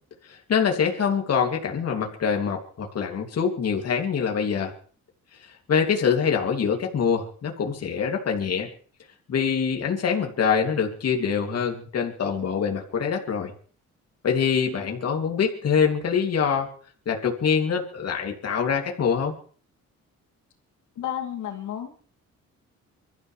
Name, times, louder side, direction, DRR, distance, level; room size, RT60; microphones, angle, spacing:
voice 1, 0.3-4.7 5.7-8.7 9.3-13.5 14.2-16.7 17.1-19.3, left 6 dB, 55° left, 2 dB, 2.8 m, -24 dB
voice 2, 21.0-21.9, left 10 dB, 75° left, 4 dB, 2.8 m, -31 dB
25.0 x 13.5 x 3.4 m, 0.44 s
cardioid pair, 90°, 30 cm